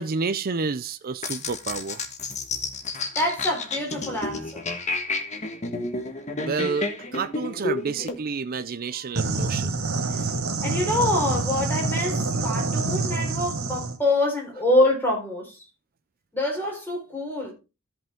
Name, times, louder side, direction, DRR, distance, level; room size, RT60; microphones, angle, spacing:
voice 1, 0.0-2.0 6.4-9.8, right 4 dB, 45° right, 0.5 m, -29 dB
sound 1, 1.2-8.2, left 3 dB, 35° left, 1.4 m, -31 dB
voice 2, 3.1-4.6 10.1-10.3 10.6-15.6 16.3-17.5, left 1 dB, 10° left, 4.0 m, -25 dB
sound 2, 9.2-14.0, right 3 dB, 80° right, 1.7 m, -26 dB
14.0 x 5.5 x 3.6 m
head